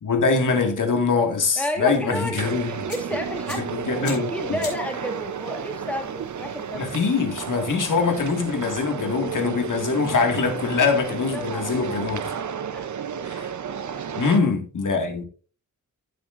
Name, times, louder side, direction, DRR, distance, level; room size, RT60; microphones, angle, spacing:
voice 1, 0.0-2.7 3.7-4.3 6.7-12.3 13.2-13.5 14.2-15.2, left 4 dB, 75° left, 2.0 m, -23 dB
voice 2, 1.6-2.4 2.7-6.9 11.3-11.9 12.7-13.0 13.9-14.1, equal, 5° left, 2.2 m, -32 dB
sound 1, 2.3-8.7, left 3 dB, 45° left, 5.3 m, -45 dB
sound 2, 2.4-14.4, right 7 dB, 65° right, 0.7 m, -32 dB
16.0 x 7.7 x 2.6 m
wide cardioid pair, 150°, 31 cm